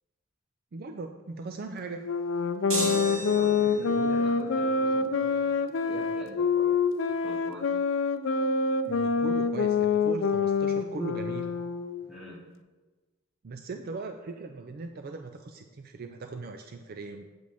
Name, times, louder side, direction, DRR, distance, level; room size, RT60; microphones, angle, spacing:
voice 1, 0.7-2.1 8.9-11.5 13.4-17.3, right 3 dB, 50° right, 6 dB, 0.4 m, -39 dB
sound 1, 2.0-12.0, left 5 dB, 65° left, 0.4 m, -26 dB
sound 2, 2.7-4.0, right 2 dB, 85° right, 1.9 m, -33 dB
voice 2, 3.2-6.8 7.2-7.7 12.0-12.4, left 1 dB, 5° right, -8 dB, 2.5 m, -44 dB
7.8 x 7.4 x 3.5 m, 1.3 s
head